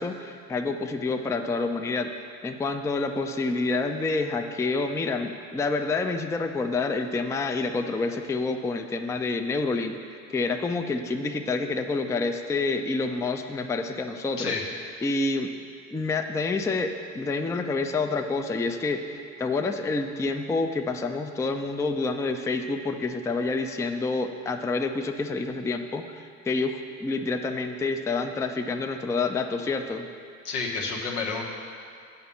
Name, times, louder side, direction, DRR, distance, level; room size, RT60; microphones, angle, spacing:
voice 1, 0.0-2.1 2.4-14.6 15.0-15.5 15.9-30.1, left 3 dB, 5° left, 5 dB, 0.4 m, -28 dB
voice 2, 30.4-31.4, left 4 dB, 80° left, -1 dB, 1.3 m, -29 dB
7.9 x 5.6 x 7.0 m, 2.3 s
hypercardioid pair, 60°, 45 cm